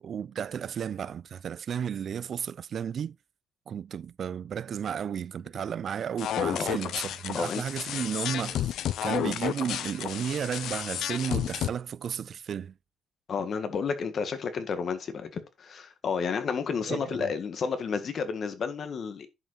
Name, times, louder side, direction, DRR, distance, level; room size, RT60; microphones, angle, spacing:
voice 1, 0.0-3.2 3.7-8.7 9.0-12.7 16.9-17.3, right 8 dB, 55° right, 0.3 m, -33 dB
sound 1, 6.2-11.7, left 11 dB, 80° left, 0.6 m, -31 dB
voice 2, 13.3-19.3, left 6 dB, 55° left, 1.7 m, -31 dB
10.5 x 5.3 x 3.9 m
cardioid pair, 90°, 0 cm